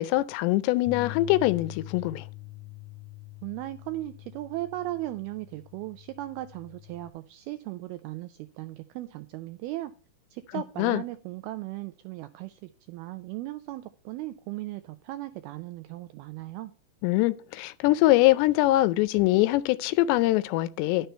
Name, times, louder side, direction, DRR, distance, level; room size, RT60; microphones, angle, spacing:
voice 1, 0.0-2.3 10.8-11.0 17.0-21.1, left 17 dB, 85° left, 2.7 m, -23 dB
Bass guitar, 0.9-7.1, left 18 dB, 50° left, 3.9 m, -44 dB
voice 2, 3.4-9.9 10.3-16.7, right 16 dB, 85° right, 2.2 m, -37 dB
11.5 x 6.7 x 4.4 m
omnidirectional pair, 5.0 m